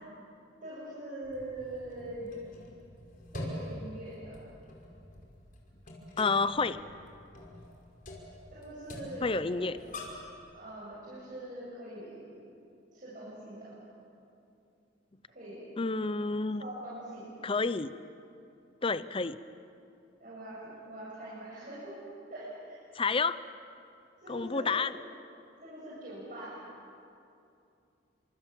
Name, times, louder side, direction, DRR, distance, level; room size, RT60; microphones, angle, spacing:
voice 1, 0.6-2.3 3.3-4.4 8.5-9.6 10.5-12.4 12.9-13.8 15.3-15.7 16.6-17.3 20.2-20.6 20.9-22.0 22.3-22.8 24.2-24.8 25.6-26.6, right 1 dB, 45° right, -8 dB, 8.0 m, -43 dB
sound 1, 1.2-10.3, left 1 dB, 45° left, 5.3 m, -46 dB
voice 2, 6.2-6.8 9.2-9.8 15.8-16.6 17.4-17.9 18.8-19.4 22.9-23.4 24.3-25.0, left 4 dB, 30° left, 14 dB, 0.7 m, -29 dB
29.5 x 26.5 x 7.5 m, 2.6 s
head